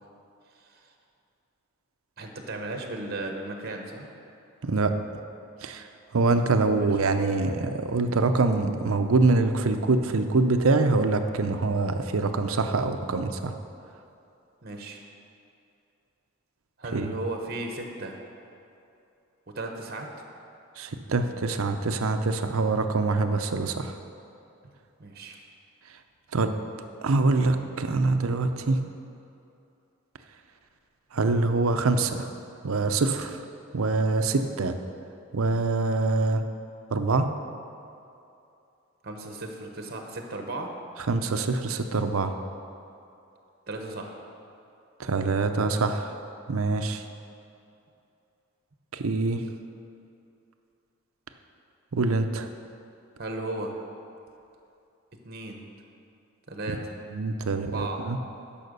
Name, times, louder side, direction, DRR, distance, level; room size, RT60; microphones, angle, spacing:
voice 1, 0.6-0.9 2.2-4.1 6.8-6.9 14.6-15.0 16.8-18.2 19.5-20.3 25.0-25.4 39.0-40.7 43.7-44.2 53.2-53.8 55.2-55.7 56.5-57.0 57.5-58.1, right 2 dB, 45° right, 3 dB, 1.0 m, -35 dB
voice 2, 4.6-4.9 5.6-5.8 6.1-13.5 16.9-17.2 20.8-23.9 26.3-26.5 27.0-28.8 31.1-32.3 32.6-33.4 33.7-34.8 35.3-36.4 36.9-37.3 41.1-42.3 45.0-46.1 46.5-47.0 48.9-49.4 51.9-52.5 57.1-58.2, right 3 dB, 75° right, 8 dB, 0.6 m, -24 dB
11.0 x 5.7 x 6.7 m, 2.7 s
head